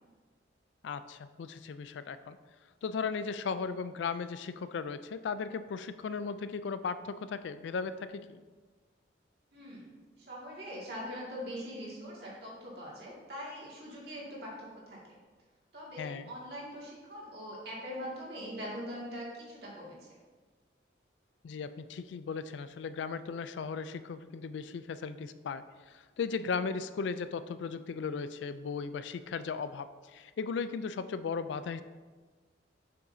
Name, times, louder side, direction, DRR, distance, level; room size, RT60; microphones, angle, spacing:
voice 1, 0.8-2.4 2.8-8.4 16.0-16.3 21.4-31.8, left 5 dB, 70° left, 13 dB, 0.3 m, -37 dB
voice 2, 9.5-15.0 15.7-20.1, equal, 55° right, -5 dB, 2.1 m, -42 dB
7.1 x 6.1 x 2.7 m, 1.4 s
head